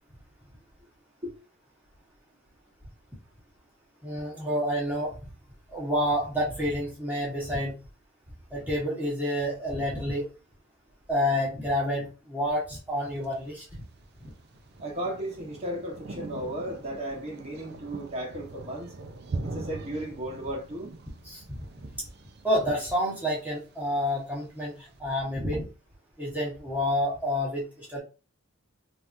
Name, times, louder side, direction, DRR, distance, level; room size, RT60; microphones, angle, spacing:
voice 1, 4.0-5.3 5.7-7.7 8.5-10.2 11.1-13.8 14.2-14.3 21.3-21.6 22.4-25.6 26.2-28.0, equal, 10° right, 1.2 m, -29 dB
Thunder, 13.0-25.0, right 3 dB, 50° right, 0.4 m, -42 dB
voice 2, 14.8-18.9 19.4-20.9, right 1 dB, 30° right, 1.1 m, -35 dB
3.3 x 2.8 x 2.6 m
head